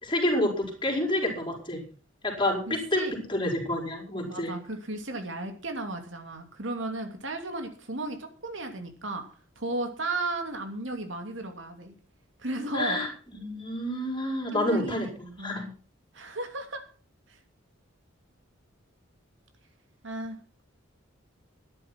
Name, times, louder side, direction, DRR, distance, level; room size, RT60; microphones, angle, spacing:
voice 1, 0.0-1.8 2.2-4.5 12.7-13.1 13.3-15.6, left 1 dB, 25° left, 1 dB, 4.9 m, -28 dB
voice 2, 2.7-3.1 4.3-9.2 9.6-11.9 12.4-13.0 14.5-15.7 16.1-16.8 17.3-17.4 20.0-20.4, right 2 dB, 65° right, 5 dB, 2.9 m, -34 dB
13.5 x 11.0 x 6.1 m, 0.38 s
head